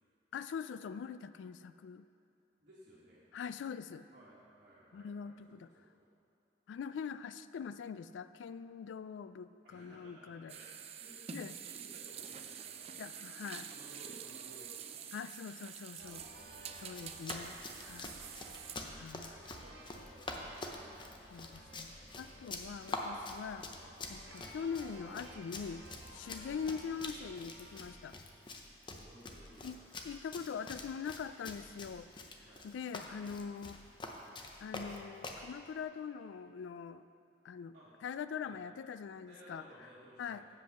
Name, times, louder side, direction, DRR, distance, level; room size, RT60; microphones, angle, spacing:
voice 1, 0.3-2.0 3.3-4.1 4.9-5.7 6.7-10.5 11.3-11.5 13.0-13.7 15.1-16.2 16.8-17.6 17.8-18.1 19.0-19.4 21.3-21.9 22.2-23.7 24.1-25.8 26.1-28.2 29.6-29.8 30.0-32.1 32.6-33.8 34.6-37.0 37.4-37.7 38.0-39.6 40.2-40.4, left 6 dB, 85° left, 13 dB, 0.3 m, -43 dB
voice 2, 2.6-3.2 4.1-6.1 9.6-13.0 13.6-14.7 16.4-17.2 23.4-23.7 24.2-24.4 26.2-26.4 28.9-29.8 32.4-32.7 37.7-37.9 38.4-38.6 39.2-40.5, right 1 dB, 55° right, -10 dB, 1.5 m, -59 dB
sound 1, 10.5-18.7, right 8 dB, 35° right, 0.4 m, -47 dB
sound 2, 16.0-27.9, right 1 dB, 85° right, 1.4 m, -55 dB
Run, 16.8-35.5, left 2 dB, 25° left, 0.6 m, -46 dB
7.7 x 5.3 x 6.7 m, 2.7 s
head